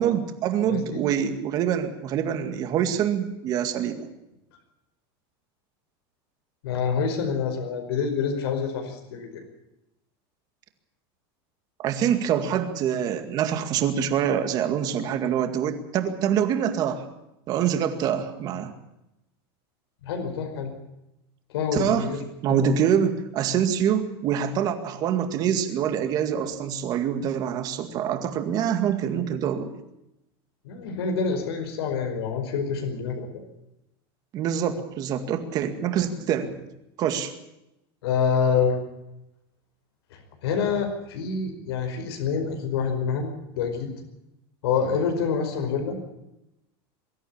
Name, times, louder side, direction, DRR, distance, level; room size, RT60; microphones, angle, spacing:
voice 1, 0.0-4.1 11.8-17.0 17.5-18.7 21.7-22.1 22.4-29.7 34.3-36.5 37.0-37.3, right 9 dB, 30° right, 8 dB, 2.1 m, -25 dB
voice 2, 0.6-1.1 6.6-9.4 20.0-20.7 21.5-22.2 22.5-22.7 30.6-33.3 38.0-38.8 40.1-43.9 44.6-46.0, left 6 dB, 90° left, 4 dB, 5.1 m, -27 dB
23.0 x 13.5 x 8.7 m, 0.89 s
supercardioid pair, 175°, 13 cm